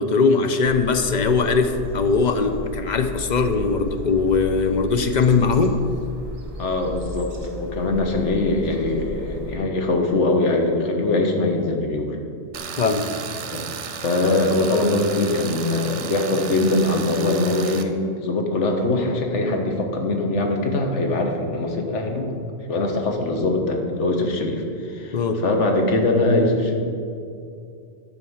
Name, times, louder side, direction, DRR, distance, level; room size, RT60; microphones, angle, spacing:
voice 1, 0.0-5.8 12.8-13.1 25.1-25.4, left 4 dB, 50° left, 7 dB, 0.6 m, -20 dB
sound 1, 0.6-9.6, right 1 dB, 60° right, 1.7 m, -35 dB
voice 2, 6.6-12.2 13.5-13.6 14.0-22.3 22.7-26.8, left 2 dB, 85° left, 3 dB, 1.5 m, -22 dB
Tools, 12.5-17.8, right 7 dB, 80° right, 1.0 m, -33 dB
10.5 x 4.6 x 7.1 m, 2.4 s
omnidirectional pair, 1.2 m